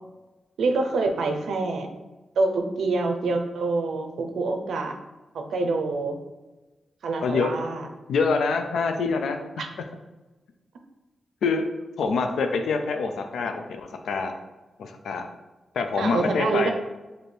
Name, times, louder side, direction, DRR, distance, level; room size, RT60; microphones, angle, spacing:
voice 1, 0.6-1.9 2.4-5.0 5.3-6.2 7.0-7.9 9.6-9.7 16.0-16.7, right 3 dB, 85° right, 4 dB, 0.5 m, -26 dB
voice 2, 7.2-7.6 8.1-9.4 11.4-11.7 12.0-14.3 14.8-15.2 15.7-16.7, left 4 dB, 90° left, 5 dB, 0.3 m, -25 dB
3.2 x 2.6 x 4.2 m, 1.1 s
wide cardioid pair, 150°, 0 cm